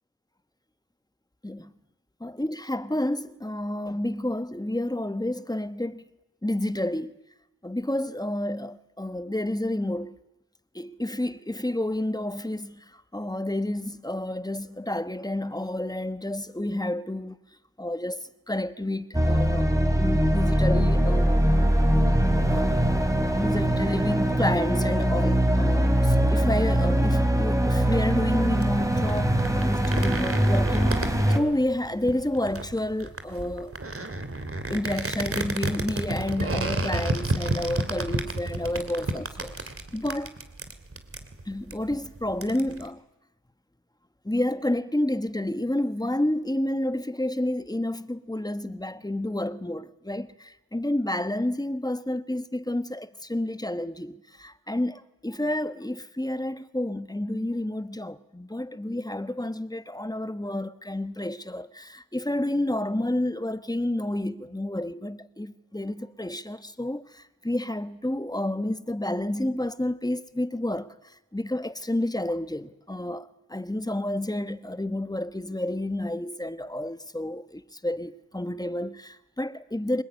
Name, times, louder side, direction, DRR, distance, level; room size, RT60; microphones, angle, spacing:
voice 1, 2.2-6.0 6.4-7.2 7.6-10.2 10.7-17.4 17.8-19.7 19.9-21.8 22.5-22.7 23.3-33.7 34.7-40.3 41.4-43.0 44.2-80.0, left 1 dB, 10° left, 1.3 m, -30 dB
sound 1, 19.1-31.4, equal, 10° right, 3.5 m, -22 dB
sound 2, 28.5-42.9, right 2 dB, 40° right, 2.8 m, -32 dB
26.0 x 20.0 x 9.6 m
cardioid pair, 60°, 35 cm